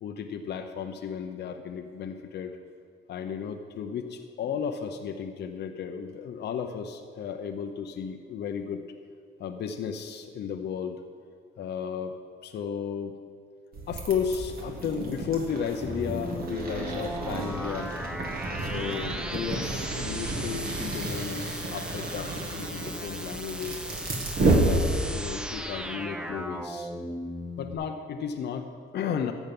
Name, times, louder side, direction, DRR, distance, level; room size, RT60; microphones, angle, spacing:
voice 1, 0.0-2.6 3.1-8.8 9.4-11.0 11.6-12.1 12.4-13.2 13.9-17.9 18.6-24.0 24.6-26.9 27.6-29.3, left 7 dB, 55° left, 5 dB, 0.7 m, -34 dB
sound 1, 13.7-25.3, right 2 dB, 45° right, 1.8 m, -31 dB
sound 2, 15.9-27.7, equal, 5° right, 0.6 m, -37 dB
14.0 x 7.2 x 5.3 m, 2.2 s
cardioid pair, 130°, 21 cm